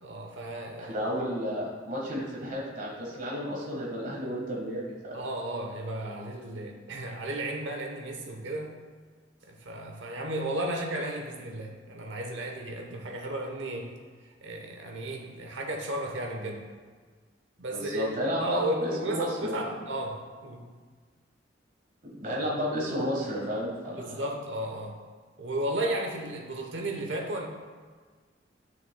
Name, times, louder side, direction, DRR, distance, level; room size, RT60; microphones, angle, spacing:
voice 1, 0.0-1.0 5.1-8.7 9.4-13.9 14.4-16.7 17.6-20.7 23.9-25.0 25.4-27.5, right 1 dB, 90° right, 1 dB, 1.0 m, -34 dB
voice 2, 0.8-5.2 17.7-19.7 22.2-24.2, equal, 50° right, -4 dB, 1.5 m, -32 dB
8.8 x 6.4 x 2.3 m, 1.5 s
head